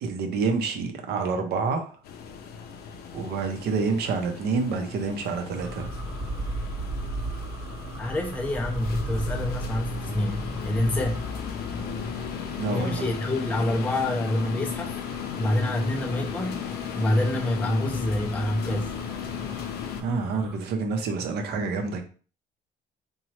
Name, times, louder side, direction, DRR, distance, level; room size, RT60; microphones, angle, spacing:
voice 1, 0.0-1.9 3.1-5.9 12.5-13.0 20.0-22.0, right 4 dB, 75° right, 0.7 m, -28 dB
sound 1, 2.0-20.0, left 7 dB, 65° left, 0.5 m, -36 dB
sound 2, 5.6-20.6, right 1 dB, 30° right, 1.0 m, -37 dB
voice 2, 8.0-11.2 12.7-15.0 15.4-16.6 17.0-18.9, left 1 dB, 10° left, 0.4 m, -27 dB
2.9 x 2.3 x 3.1 m
cardioid pair, 110°, 17 cm